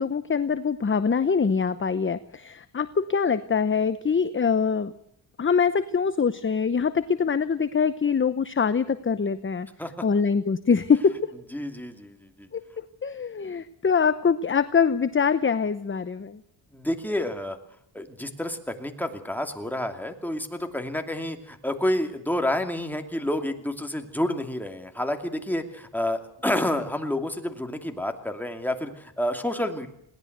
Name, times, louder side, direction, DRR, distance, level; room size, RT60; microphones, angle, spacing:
voice 1, 0.0-4.9 5.4-9.7 10.0-11.3 12.5-16.4, left 6 dB, 25° left, 13 dB, 0.8 m, -24 dB
voice 2, 11.5-12.5 16.7-17.6 17.9-29.9, left 1 dB, 5° left, 5 dB, 2.7 m, -29 dB
21.5 x 18.0 x 8.1 m, 0.71 s
cardioid pair, 100°, 47 cm